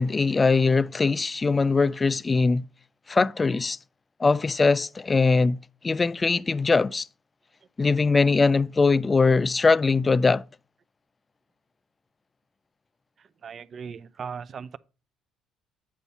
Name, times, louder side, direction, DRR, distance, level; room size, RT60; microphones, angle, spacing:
voice 1, 0.0-2.6 3.1-3.8 4.2-5.6 5.8-7.1 7.8-10.4, left 4 dB, 25° left, 0.4 m, -21 dB
voice 2, 13.2-14.8, right 6 dB, 45° right, 0.5 m, -38 dB
8.3 x 5.5 x 4.1 m
supercardioid pair, 85°, 0 cm